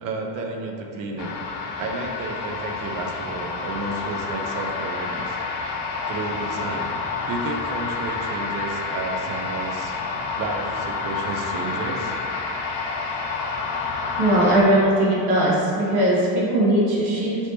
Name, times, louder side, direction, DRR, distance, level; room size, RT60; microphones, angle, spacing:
voice 1, 0.0-1.3 1.8-5.4 6.1-6.9 7.3-9.9 10.4-12.2, right 3 dB, 55° right, 1 dB, 0.5 m, -31 dB
sound 1, 1.2-14.6, left 4 dB, 60° left, 0.5 m, -29 dB
voice 2, 14.2-17.4, right 1 dB, 75° right, -5 dB, 1.0 m, -19 dB
2.9 x 2.8 x 3.3 m, 2.8 s
cardioid pair, 135°, 40 cm